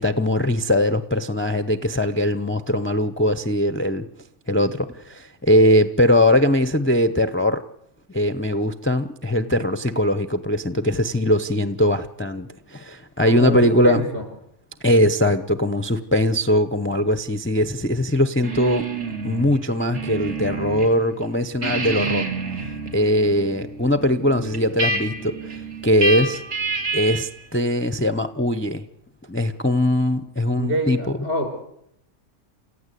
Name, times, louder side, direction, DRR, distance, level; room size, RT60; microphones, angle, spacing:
voice 1, 0.0-4.1 4.5-7.6 8.1-14.0 14.8-18.8 19.2-22.3 22.9-26.4 26.9-28.8 29.3-31.2, left 1 dB, 10° left, 10 dB, 0.7 m, -21 dB
voice 2, 13.2-14.2 30.6-31.5, equal, 60° right, 4 dB, 5.6 m, -26 dB
sound 1, 18.4-20.9 21.2-27.4, right 3 dB, 85° right, 3.4 m, -28 dB
29.0 x 15.0 x 8.3 m, 0.78 s
omnidirectional pair, 1.3 m